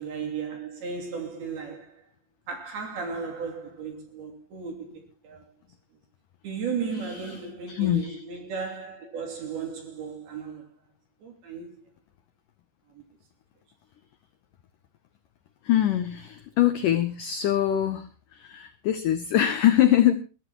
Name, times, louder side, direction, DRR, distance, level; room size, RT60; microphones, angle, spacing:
voice 1, 0.0-2.0 2.5-5.4 6.4-10.7 11.2-11.9 12.9-13.0, right 5 dB, 60° right, 4.7 m, -35 dB
voice 2, 7.0-7.4 7.7-8.2 15.6-20.1, left 12 dB, 80° left, 1.9 m, -23 dB
21.5 x 14.5 x 3.0 m
omnidirectional pair, 5.0 m